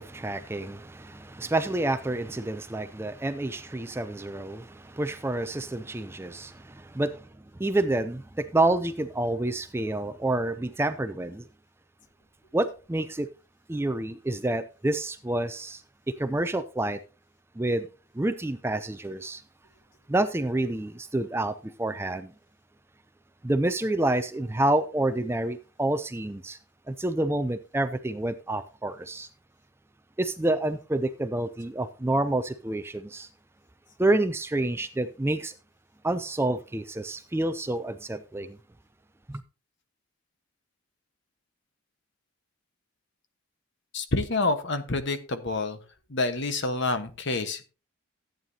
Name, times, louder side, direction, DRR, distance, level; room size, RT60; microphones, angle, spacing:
voice 1, 0.0-11.5 12.5-13.3 13.7-17.0 17.6-17.9 18.1-19.4 20.1-22.3 23.4-26.6 26.9-29.3 30.2-33.3 34.0-35.5 36.0-38.6 39.3-39.4, right 2 dB, 10° right, 0.4 m, -28 dB
voice 2, 43.9-45.8 46.1-47.7, left 3 dB, 55° left, 1.2 m, -28 dB
14.0 x 9.0 x 2.7 m
head